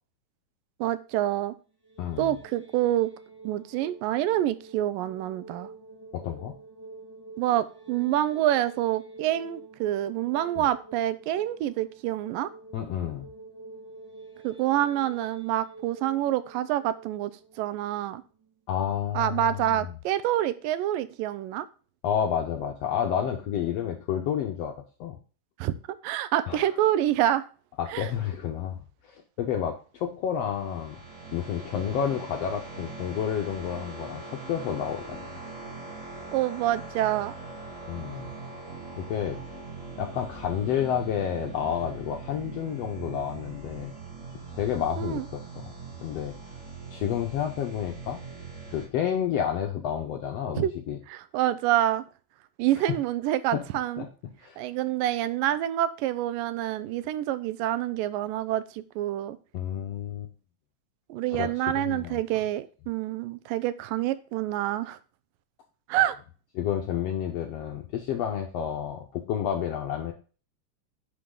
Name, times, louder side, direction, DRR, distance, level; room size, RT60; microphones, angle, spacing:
voice 1, 0.8-1.5 2.2-3.1 3.4-5.7 7.4-12.5 14.4-17.3 17.6-18.2 19.2-21.7 25.6-25.7 26.0-27.5 27.9-28.1 36.3-37.3 45.0-45.2 50.6-50.7 51.1-52.0 52.6-54.0 54.6-59.4 61.1-65.0 65.9-66.2, right 13 dB, 90° right, 15 dB, 2.4 m, -27 dB
sound 1, 1.7-18.8, right 3 dB, 15° right, 0.9 m, -48 dB
voice 2, 2.0-2.3 6.1-6.5 10.6-10.7 12.7-13.3 18.7-19.9 22.0-24.7 25.0-25.2 26.5-26.6 27.8-31.0 31.3-34.2 34.5-35.2 37.9-38.3 39.0-39.4 40.0-43.9 44.5-45.7 46.0-46.4 46.9-48.2 48.7-51.0 52.8-52.9 53.5-53.6 54.0-54.1 54.4-54.6 59.5-60.3 61.3-62.2 66.6-70.1, left 9 dB, 75° left, 3 dB, 1.4 m, -30 dB
sound 2, 30.3-48.9, right 4 dB, 30° right, 1.7 m, -41 dB
10.0 x 5.5 x 3.7 m, 0.37 s
omnidirectional pair, 3.9 m